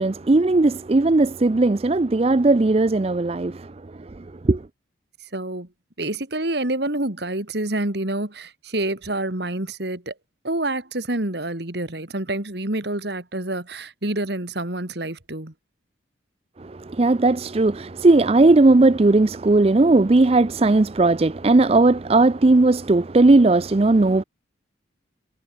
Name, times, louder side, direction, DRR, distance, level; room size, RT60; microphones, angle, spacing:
voice 1, 0.0-3.7 4.0-4.6 16.6-24.2, right 2 dB, 30° right, 0.5 m, -17 dB
voice 2, 5.3-5.7 6.0-10.1 10.4-15.5, right 1 dB, 55° right, 2.5 m, -27 dB
head